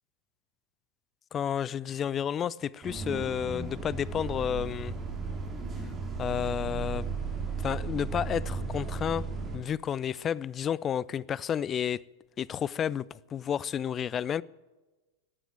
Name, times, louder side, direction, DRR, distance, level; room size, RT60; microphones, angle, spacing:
voice 1, 1.3-4.9 6.2-7.1 7.6-9.3 9.5-12.0 12.4-14.4, left 9 dB, 25° left, 0.4 m, -31 dB
Bus, 2.8-9.6, right 4 dB, 20° right, 2.7 m, -35 dB
14.0 x 9.1 x 9.3 m
figure-of-eight pair, 90°, 0 cm